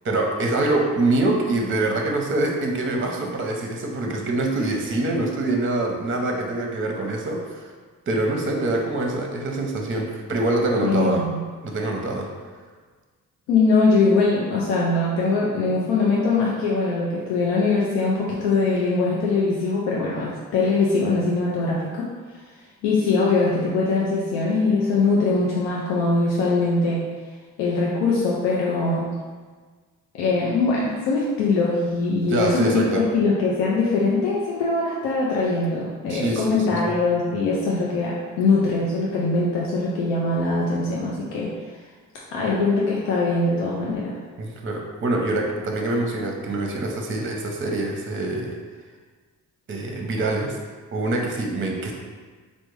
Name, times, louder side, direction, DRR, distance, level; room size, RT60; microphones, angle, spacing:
voice 1, 0.0-7.7 8.1-11.2 11.6-12.3 32.3-33.0 36.1-36.8 44.4-48.6 49.7-50.6 50.9-51.9, right 2 dB, 30° right, 1 dB, 0.6 m, -25 dB
voice 2, 10.8-11.4 13.5-22.1 22.8-27.1 27.6-29.1 30.1-41.5 42.3-44.2, left 3 dB, 85° left, -5 dB, 0.5 m, -22 dB
3.3 x 2.1 x 3.1 m, 1.5 s
supercardioid pair, 45°, 39 cm